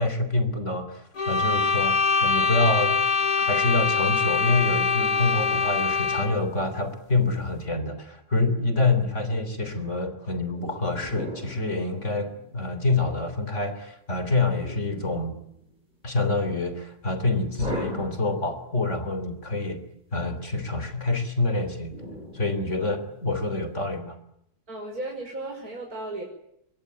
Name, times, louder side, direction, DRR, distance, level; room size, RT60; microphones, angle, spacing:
voice 1, 0.0-3.0 3.5-15.3 16.0-19.8 20.1-21.9 22.3-24.2, left 2 dB, 50° left, 10 dB, 3.8 m, -26 dB
sound 1, 1.2-6.4, left 5 dB, 85° left, 2.4 m, -23 dB
sound 2, 10.5-12.8 14.5-15.8 17.6-18.9 21.9-23.3, equal, 30° right, 7.1 m, -39 dB
voice 2, 24.7-26.2, right 2 dB, 65° right, 1 dB, 5.9 m, -35 dB
25.5 x 22.5 x 9.5 m, 0.76 s
omnidirectional pair, 1.7 m